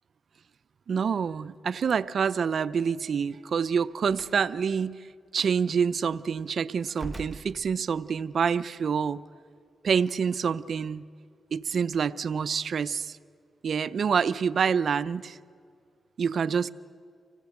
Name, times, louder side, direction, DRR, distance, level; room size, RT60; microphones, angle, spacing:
voice 1, 0.9-4.9 5.3-9.2 9.8-11.1 11.5-13.2 13.6-15.4 16.2-16.7, right 6 dB, 60° right, 15 dB, 0.5 m, -27 dB
Slam, 4.1-4.4 5.4-5.5 6.9-8.2, right 2 dB, 20° right, 1.0 m, -42 dB
25.0 x 17.5 x 8.2 m, 2.3 s
cardioid pair, 75°, 0 cm